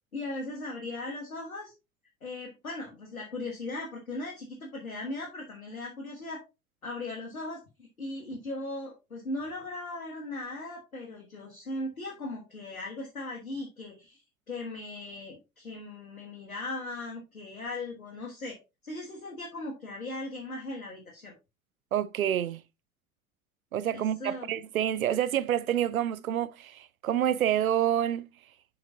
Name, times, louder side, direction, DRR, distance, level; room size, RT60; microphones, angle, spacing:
voice 1, 0.1-1.7 2.2-6.4 6.8-14.2 14.5-18.6 18.8-21.3 23.9-24.6, left 2 dB, 85° left, 1.6 m, -38 dB
voice 2, 21.9-22.6 23.7-28.3, right 10 dB, 85° right, 0.6 m, -28 dB
7.9 x 5.9 x 2.7 m
figure-of-eight pair, 70°, 41 cm